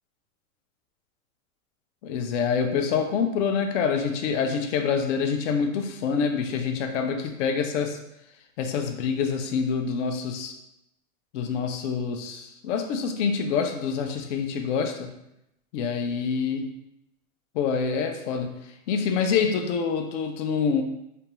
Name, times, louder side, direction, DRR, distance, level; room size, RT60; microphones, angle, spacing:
voice 1, 2.0-8.0 8.6-10.5 11.3-15.1 15.7-16.7 17.5-18.5 18.9-20.8, left 6 dB, 55° left, 5 dB, 0.5 m, -26 dB
2.6 x 2.2 x 2.9 m, 0.84 s
hypercardioid pair, 135°, 43 cm